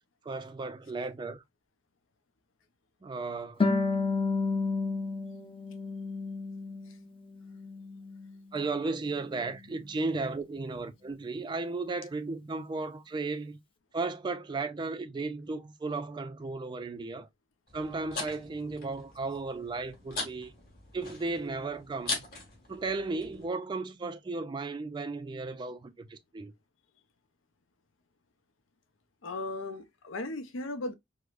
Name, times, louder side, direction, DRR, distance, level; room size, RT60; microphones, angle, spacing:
voice 1, 0.3-1.4 3.0-3.6 8.5-13.6 13.9-17.3 17.7-20.5 20.9-22.2 22.7-26.5, right 3 dB, 25° right, 0.3 m, -35 dB
Harp, 3.6-7.0 7.3-8.4, left 3 dB, 30° left, 0.5 m, -31 dB
sound 1, 17.7-23.5, left 3 dB, 50° left, 1.6 m, -41 dB
voice 2, 29.2-30.9, left 2 dB, 85° left, 0.6 m, -36 dB
4.7 x 2.0 x 2.4 m
head